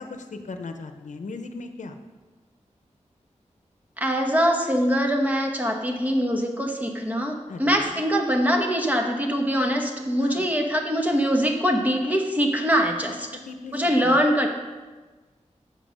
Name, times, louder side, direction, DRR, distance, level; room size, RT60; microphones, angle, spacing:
voice 1, 0.0-1.9 7.5-8.0 10.2-10.5 13.1-14.2, left 3 dB, 80° left, 7 dB, 0.7 m, -38 dB
voice 2, 4.0-13.3 13.7-14.5, equal, 15° right, 2 dB, 1.0 m, -23 dB
7.6 x 5.4 x 6.3 m, 1.3 s
wide cardioid pair, 115°, 12 cm